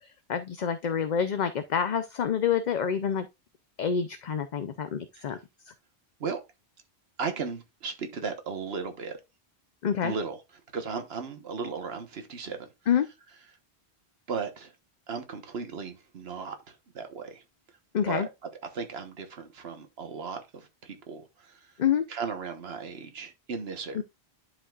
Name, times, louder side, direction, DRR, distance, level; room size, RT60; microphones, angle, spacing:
voice 1, 0.3-3.3 3.8-5.4 9.8-10.1 12.9-13.1 17.9-18.3 21.8-22.1, left 8 dB, 50° left, 0.6 m, -27 dB
voice 2, 7.2-9.2 10.0-12.7 14.3-14.7 15.1-17.4 18.1-18.3 18.7-21.8 22.1-24.0, right 5 dB, 70° right, 1.4 m, -36 dB
11.0 x 5.2 x 2.4 m
omnidirectional pair, 1.1 m